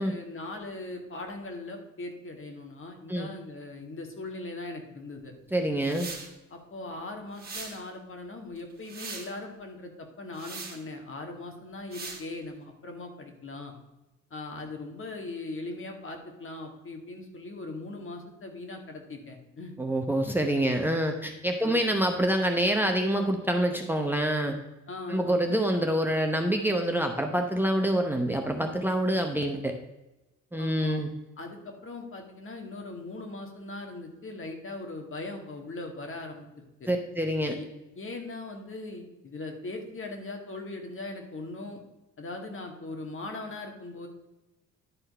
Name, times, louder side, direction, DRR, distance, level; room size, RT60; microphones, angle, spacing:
voice 1, 0.0-5.3 6.5-13.7 14.3-19.8 21.6-21.8 24.9-25.4 30.6-31.0 31.4-36.9 37.5-37.6 38.0-41.8 42.2-44.1, left 2 dB, 45° left, 4 dB, 2.0 m, -40 dB
voice 2, 5.5-6.1 19.8-24.5 25.1-29.8 30.5-31.1 36.9-37.5, right 1 dB, 5° right, 4 dB, 0.9 m, -26 dB
sound 1, 5.8-6.3 7.4-7.8 8.6-9.3 10.3-10.8 11.9-12.2, right 4 dB, 30° right, 2.1 m, -40 dB
11.0 x 4.4 x 5.4 m, 1.0 s
cardioid pair, 90°, 30 cm